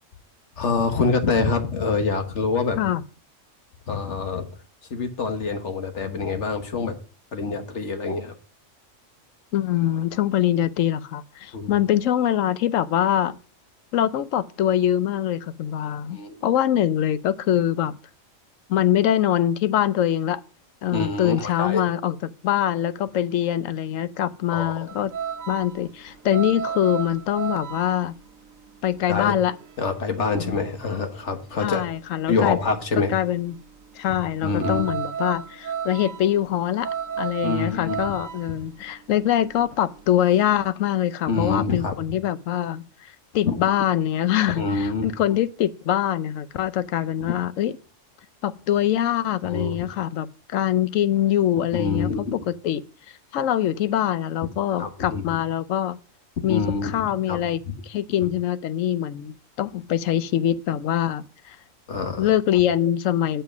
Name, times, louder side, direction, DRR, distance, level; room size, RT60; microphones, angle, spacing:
voice 1, 0.6-2.8 3.9-4.5 4.9-7.0 7.3-8.3 11.5-11.8 16.1-16.4 20.9-21.8 24.5-24.9 29.1-29.4 29.8-31.9 32.3-33.1 34.1-34.9 37.4-38.1 41.3-42.0 43.4-43.5 44.5-45.1 47.2-47.3 49.4-49.8 51.7-52.4 54.8-55.2 56.5-57.4 57.7-57.8 58.2-58.3 61.9-62.3, left 4 dB, 60° left, 1.6 m, -26 dB
voice 2, 9.5-13.4 13.9-18.0 18.7-20.4 20.8-22.2 22.4-25.1 25.5-28.1 28.8-29.5 30.3-30.5 31.6-32.6 32.9-33.5 34.0-47.7 48.4-52.8 53.3-56.0 56.4-57.6 57.9-61.6 62.2-63.4, left 11 dB, 75° left, 1.0 m, -23 dB
sound 1, 24.9-32.0 32.3-40.7, right 7 dB, 85° right, 1.2 m, -34 dB
7.8 x 5.7 x 5.9 m
omnidirectional pair, 1.4 m